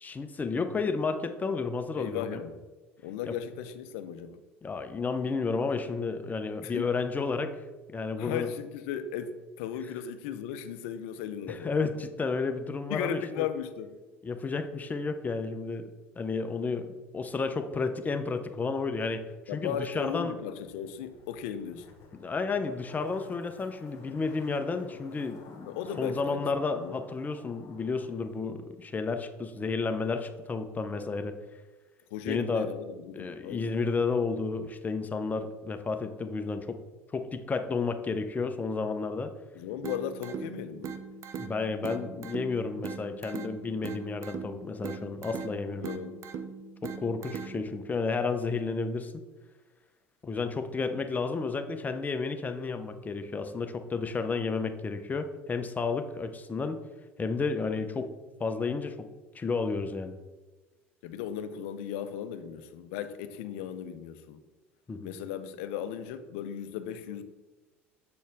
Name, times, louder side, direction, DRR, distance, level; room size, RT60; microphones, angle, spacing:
voice 1, 0.0-2.4 3.2-3.3 4.6-7.5 7.9-8.5 11.5-13.5 14.2-15.9 16.2-16.9 17.1-19.2 19.5-20.4 22.2-31.4 32.2-32.7 33.1-36.8 37.1-39.3 41.4-45.8 46.8-49.1 50.2-56.8 57.2-58.1 58.4-59.0 59.3-60.1 64.9-65.1, left 4 dB, 25° left, 0.7 m, -31 dB
voice 2, 2.0-2.6 3.0-4.4 6.6-6.9 8.2-11.7 12.9-14.0 19.5-21.9 25.7-26.5 26.7-27.0 32.1-33.7 39.5-40.9 45.8-46.2 61.0-64.4 65.0-67.2, left 9 dB, 70° left, 0.5 m, -36 dB
Zipper (clothing), 20.6-28.2 28.5-28.6, left 4 dB, 55° left, 1.1 m, -53 dB
sound 1, 39.8-47.8, right 6 dB, 45° right, 0.6 m, -40 dB
7.6 x 4.3 x 3.5 m
hypercardioid pair, 75°, 7 cm